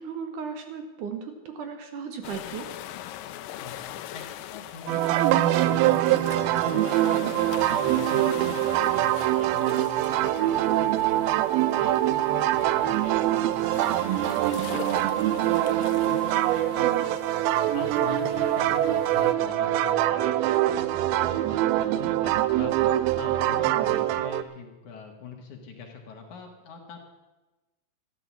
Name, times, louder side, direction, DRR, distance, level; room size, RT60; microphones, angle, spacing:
voice 1, 0.0-2.7 16.8-17.1 23.8-24.0, right 7 dB, 65° right, 6 dB, 2.3 m, -36 dB
sound 1, 2.2-19.3, left 13 dB, 80° left, 2.3 m, -42 dB
voice 2, 3.6-11.2 11.8-17.1 17.7-22.7 23.2-27.0, left 5 dB, 60° left, 2 dB, 2.9 m, -43 dB
sound 2, 4.9-24.4, right 14 dB, 90° right, 2.5 m, -24 dB
13.5 x 11.0 x 7.2 m, 1.1 s
omnidirectional pair, 4.2 m